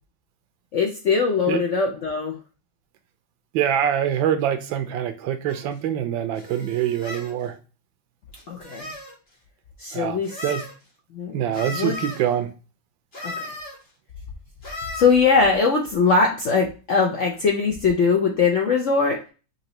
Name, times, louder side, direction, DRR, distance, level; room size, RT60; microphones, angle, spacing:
voice 1, 0.7-2.4 8.5-8.9 9.8-10.4 11.1-11.4 11.7-11.9 13.2-13.5 14.9-19.2, left 5 dB, 70° left, 0.7 m, -21 dB
voice 2, 3.5-7.6 9.9-10.6 11.3-12.5, right 10 dB, 90° right, 1.4 m, -25 dB
sound 1, 5.5-5.6 6.3-7.3 8.3-9.2 10.2-10.7 11.5-12.2 13.1-13.8 14.6-15.1, left 2 dB, 35° left, 1.6 m, -35 dB
5.6 x 2.8 x 2.9 m
omnidirectional pair, 2.0 m